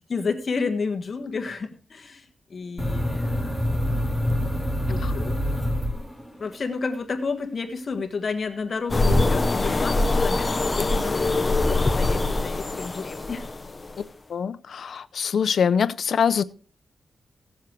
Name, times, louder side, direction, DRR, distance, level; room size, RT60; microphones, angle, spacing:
voice 1, 0.1-4.2 4.9-5.4 6.4-13.5, left 4 dB, 40° left, 1.4 m, -31 dB
sound 1, 2.8-6.5, equal, 5° right, 1.6 m, -26 dB
sound 2, 8.9-14.0, left 2 dB, 20° left, 0.9 m, -23 dB
voice 2, 14.3-16.4, left 7 dB, 60° left, 0.7 m, -24 dB
17.0 x 7.4 x 4.6 m
wide cardioid pair, 145°, 0 cm